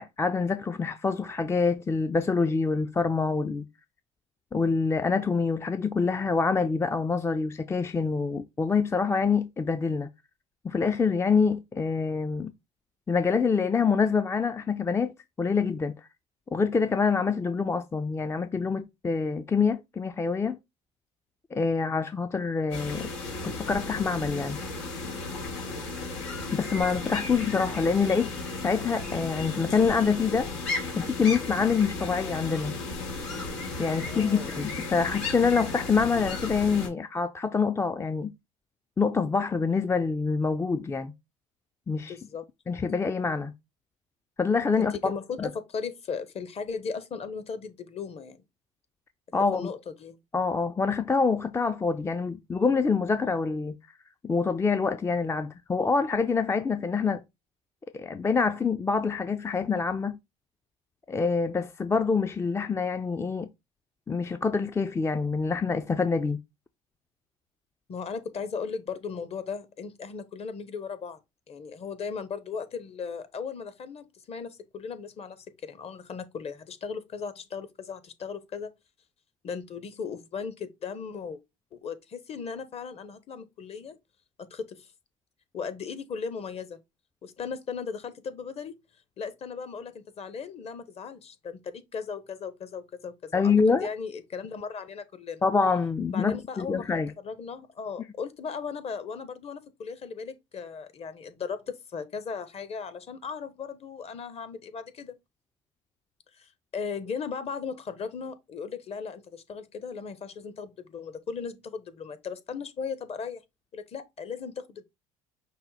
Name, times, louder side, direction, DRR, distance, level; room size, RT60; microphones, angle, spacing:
voice 1, 0.0-3.7 4.5-10.1 10.6-12.5 13.1-15.9 16.5-20.6 21.5-23.1 23.4-24.6 26.5-28.3 28.6-30.5 31.0-32.7 33.8-38.3 39.0-41.1 41.9-42.1 42.7-43.5 44.4-45.1 45.4-45.5 49.3-49.7 50.3-53.8 54.2-57.2 57.9-60.2 61.1-63.5 64.1-66.4 93.3-93.9 95.4-97.1, left 5 dB, 15° left, 0.4 m, -26 dB
sound 1, 22.7-36.9, left 3 dB, 90° left, 2.0 m, -35 dB
voice 2, 34.1-34.5 42.1-42.5 44.8-48.4 49.5-50.2 67.9-71.2 71.5-78.7 79.4-81.4 81.7-84.0 84.5-84.9 85.5-86.8 87.2-88.7 89.2-93.5 93.8-95.4 96.1-105.2 106.4-113.4 113.7-114.8, left 5 dB, 40° left, 0.9 m, -37 dB
5.5 x 2.2 x 4.0 m
hypercardioid pair, 75°, 16 cm